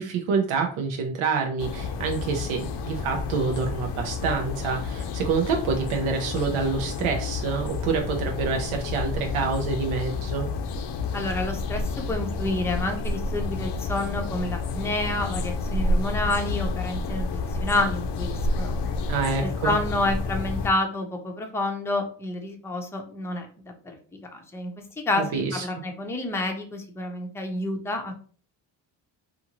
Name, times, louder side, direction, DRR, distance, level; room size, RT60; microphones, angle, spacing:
voice 1, 0.0-10.5 19.1-19.7 25.2-25.6, right 5 dB, 85° right, 2 dB, 0.6 m, -27 dB
sound 1, 1.6-20.7, left 3 dB, 60° left, 0.5 m, -30 dB
voice 2, 11.1-18.8 19.4-24.0 24.3-28.3, left 2 dB, 5° left, 3 dB, 0.5 m, -29 dB
2.6 x 2.5 x 2.9 m, 0.43 s
cardioid pair, 80°, 47 cm